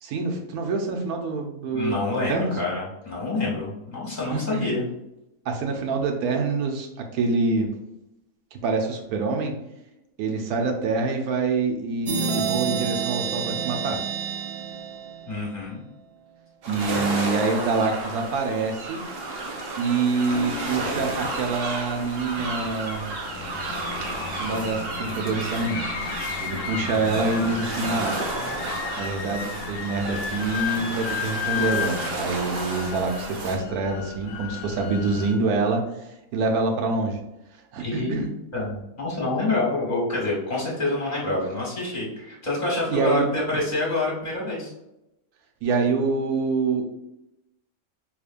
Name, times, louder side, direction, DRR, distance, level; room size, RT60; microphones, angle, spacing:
voice 1, 0.0-2.0 2.3-2.6 4.3-4.7 5.5-7.7 8.5-9.5 10.2-14.0 16.7-19.0 19.8-23.1 24.4-25.8 26.4-28.2 29.0-37.2 37.7-38.3 42.9-43.3 45.6-47.0, right 3 dB, 90° right, 3 dB, 1.2 m, -26 dB
voice 2, 1.7-4.8 15.2-15.8 27.6-27.8 28.4-28.6 37.8-44.7, left 2 dB, 30° left, -4 dB, 1.6 m, -27 dB
sound 1, 12.1-15.6, right 7 dB, 70° right, 0.6 m, -29 dB
sound 2, 16.6-33.6, right 2 dB, 50° right, 0.9 m, -32 dB
sound 3, 20.3-35.3, left 8 dB, 80° left, 1.1 m, -34 dB
4.9 x 3.1 x 2.5 m, 0.89 s
omnidirectional pair, 1.5 m